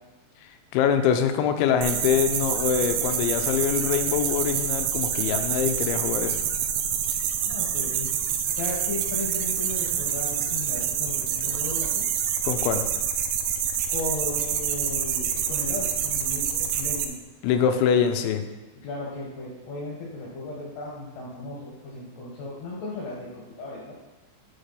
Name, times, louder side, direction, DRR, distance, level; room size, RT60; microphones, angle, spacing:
voice 1, 0.7-6.4 12.4-12.8 17.4-18.4, left 8 dB, 85° left, 7 dB, 2.9 m, -24 dB
sound 1, 1.8-17.1, right 8 dB, 90° right, 3.3 m, -27 dB
voice 2, 7.5-8.1 8.5-12.0 13.9-17.2 18.8-24.0, left 2 dB, 65° left, -5 dB, 3.3 m, -36 dB
8.1 x 6.7 x 5.7 m, 1.2 s
omnidirectional pair, 5.5 m